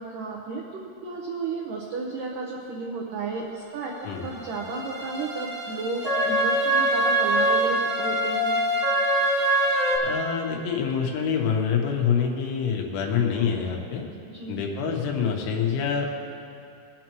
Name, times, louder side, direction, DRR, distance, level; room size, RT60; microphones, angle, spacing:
voice 1, 0.0-3.9 4.2-8.6 14.3-14.6, right 4 dB, 85° right, -2 dB, 1.9 m, -33 dB
sound 1, 4.2-10.0, right 1 dB, 40° right, 0.8 m, -24 dB
voice 2, 10.0-14.0 14.5-16.1, left 7 dB, 85° left, 0 dB, 3.6 m, -26 dB
22.5 x 8.0 x 3.0 m, 2.7 s
omnidirectional pair, 5.3 m